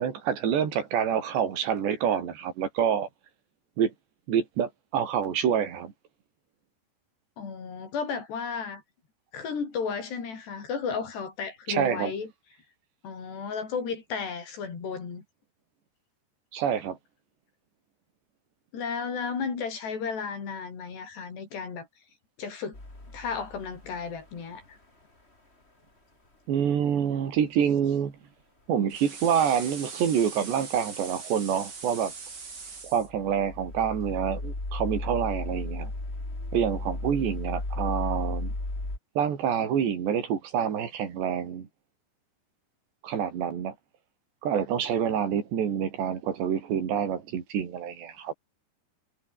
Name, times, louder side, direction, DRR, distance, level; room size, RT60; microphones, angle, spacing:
voice 1, 0.0-3.1 3.8-3.9 4.3-5.9 11.7-12.1 16.5-17.0 26.5-28.1 28.7-32.1 32.8-35.9 36.5-38.5 39.2-41.7 43.0-43.8 44.4-48.3, right 8 dB, 80° right, 5.5 m, -27 dB
voice 2, 7.4-8.8 9.3-12.3 13.0-15.2 18.7-21.9 22.4-22.8 23.1-24.8, left 5 dB, 75° left, 7.5 m, -33 dB
sound 1, 22.7-24.3 32.9-39.0, left 2 dB, 15° left, 4.9 m, -35 dB
sound 2, 28.9-33.1, right 4 dB, 25° right, 3.1 m, -41 dB
omnidirectional pair, 4.9 m